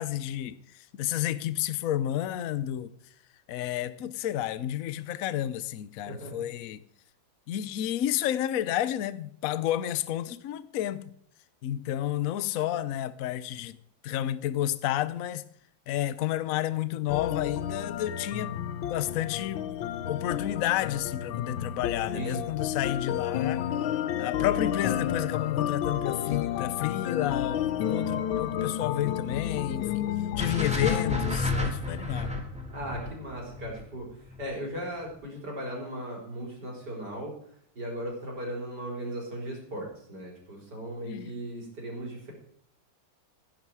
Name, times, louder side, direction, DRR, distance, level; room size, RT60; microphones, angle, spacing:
voice 1, 0.0-2.9 3.5-6.8 7.5-11.1 11.6-13.8 14.0-15.4 15.9-19.7 20.1-23.6 24.2-30.1 30.4-32.3 41.0-41.3, left 12 dB, 60° left, 0.9 m, -31 dB
sound 1, 17.1-31.4, left 10 dB, 80° left, 1.6 m, -31 dB
sound 2, 30.4-34.6, left 2 dB, 5° right, 2.1 m, -32 dB
voice 2, 32.7-37.4 37.7-42.3, right 1 dB, 55° right, 4.7 m, -37 dB
17.0 x 10.5 x 4.8 m
omnidirectional pair, 2.2 m